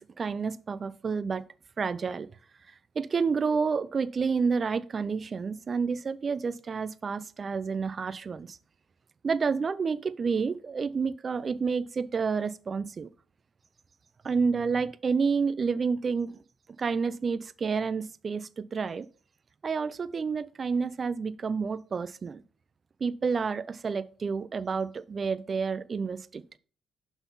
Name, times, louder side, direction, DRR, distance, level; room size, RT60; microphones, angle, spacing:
voice 1, 0.0-1.4 1.8-2.3 3.0-8.6 9.2-13.1 14.2-16.4 16.8-19.1 19.6-22.4 23.0-26.4, right 5 dB, 40° right, 0.3 m, -29 dB
5.9 x 4.0 x 5.5 m
cardioid pair, 90°, 0 cm